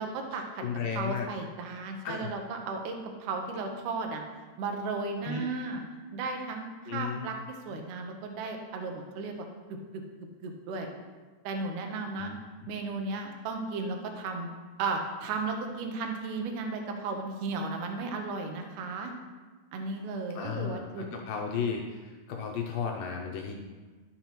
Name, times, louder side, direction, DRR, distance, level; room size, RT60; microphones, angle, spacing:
voice 1, 0.0-0.6 0.9-4.2 4.6-5.8 6.1-9.5 9.9-10.0 10.4-10.9 11.4-12.3 12.7-14.5 14.8-19.1 19.7-21.2, right 3 dB, 70° right, 3 dB, 2.0 m, -35 dB
voice 2, 0.6-1.3 2.1-2.3 5.2-5.4 6.9-7.4 12.2-12.4 20.4-23.5, left 6 dB, 80° left, 1 dB, 2.1 m, -34 dB
13.0 x 5.8 x 3.0 m, 1.3 s
omnidirectional pair, 4.4 m